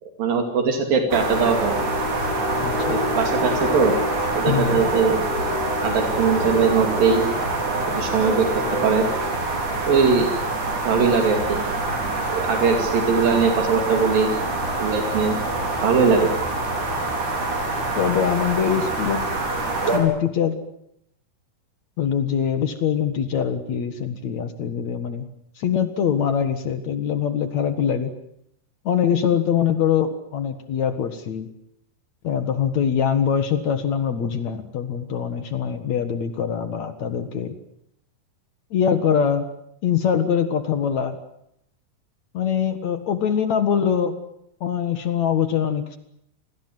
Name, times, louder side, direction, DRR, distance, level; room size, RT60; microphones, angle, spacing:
voice 1, 0.0-1.7 2.9-3.9 4.4-5.2 5.8-7.3 7.9-8.5 8.8-9.1 9.9-10.3 10.8-11.6 12.3-14.3 14.8-15.4 15.8-16.3, right 5 dB, 80° right, 5 dB, 4.2 m, -20 dB
sound 1, 1.1-20.0, right 2 dB, 60° right, 6.3 m, -25 dB
voice 2, 2.6-2.9 4.5-4.8 18.0-19.2 19.9-20.6 22.0-25.3 25.6-28.1 28.9-31.5 32.2-37.6 38.7-39.5 39.8-41.2 42.3-44.1 44.6-46.0, left 8 dB, 60° left, 9 dB, 2.7 m, -23 dB
28.0 x 20.0 x 7.9 m, 0.74 s
omnidirectional pair, 4.0 m